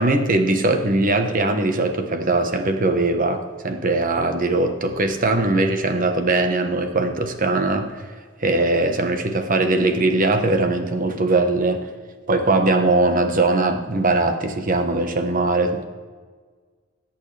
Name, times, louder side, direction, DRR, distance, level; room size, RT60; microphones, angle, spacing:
voice 1, 0.0-7.9 8.4-11.9 12.3-15.8, right 2 dB, 45° right, 6 dB, 1.2 m, -20 dB
20.5 x 8.4 x 3.4 m, 1.5 s
head